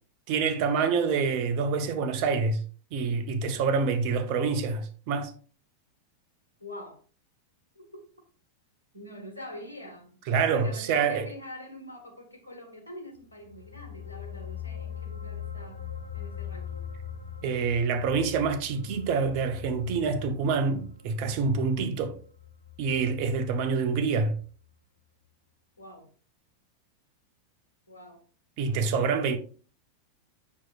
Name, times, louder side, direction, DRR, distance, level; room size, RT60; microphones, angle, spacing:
voice 1, 0.3-2.6 2.9-5.3 10.3-11.3 17.4-22.2 22.8-24.4 28.6-29.4, right 5 dB, 45° right, 0.9 m, -26 dB
voice 2, 6.6-7.0 7.7-8.0 8.9-10.2 10.5-15.8 16.1-16.9 25.8-26.1 27.9-28.2, left 1 dB, 85° right, 1.5 m, -44 dB
sound 1, 13.3-24.0 24.3-24.5, left 8 dB, 85° left, 0.9 m, -42 dB
7.2 x 6.1 x 2.5 m
figure-of-eight pair, 90°, 0 cm